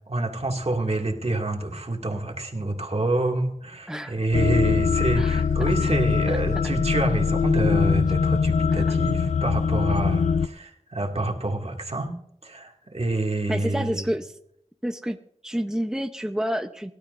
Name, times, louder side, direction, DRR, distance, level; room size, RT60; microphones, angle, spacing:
voice 1, 0.1-12.1 12.4-14.1, right 2 dB, 60° right, 2 dB, 2.3 m, -27 dB
sound 1, 4.3-10.5, left 5 dB, 80° left, 0.4 m, -22 dB
voice 2, 6.3-6.7 8.7-9.0 13.5-14.4 14.8-15.2 15.4-16.9, equal, 5° right, 7 dB, 0.8 m, -29 dB
23.5 x 12.0 x 2.6 m, 0.73 s
wide cardioid pair, 40°, 12 cm